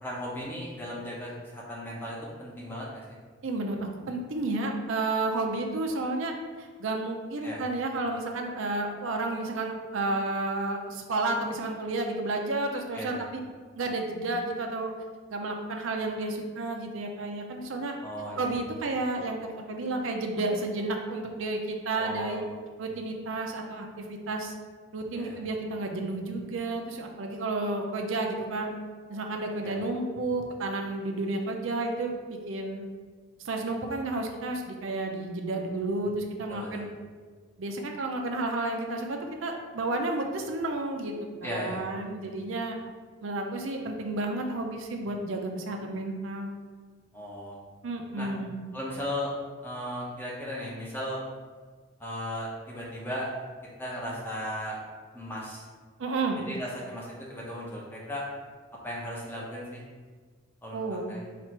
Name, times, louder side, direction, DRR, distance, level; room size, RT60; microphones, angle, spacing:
voice 1, 0.0-3.0 7.4-7.6 12.9-13.2 18.0-18.5 21.9-22.5 25.1-25.4 29.6-29.8 36.5-36.9 41.4-41.8 47.1-47.5 48.2-48.3 48.7-49.4 49.6-51.2 52.0-53.3 53.8-54.8 55.1-55.7 56.5-58.2 58.8-59.8 60.6-60.8 61.1-61.3, equal, 10° left, -5 dB, 0.7 m, -36 dB
voice 2, 3.4-6.3 6.6-13.4 13.8-14.9 15.3-17.9 18.4-22.4 22.8-24.5 24.9-28.7 29.1-32.9 33.4-36.8 37.6-42.8 43.2-46.6 47.8-48.5 56.0-56.4 60.7-61.1, right 2 dB, 75° right, 2 dB, 0.5 m, -31 dB
4.3 x 2.5 x 4.4 m, 1.5 s
head